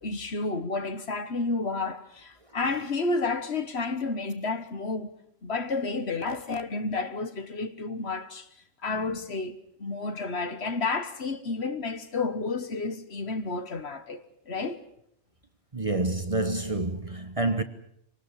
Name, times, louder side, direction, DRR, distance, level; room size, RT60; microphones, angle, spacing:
voice 1, 0.0-5.1 5.4-8.5 8.8-14.8, left 3 dB, 55° left, 1.6 m, -31 dB
voice 2, 15.7-17.6, right 2 dB, 30° right, 1.1 m, -28 dB
25.0 x 19.0 x 8.3 m
omnidirectional pair, 1.3 m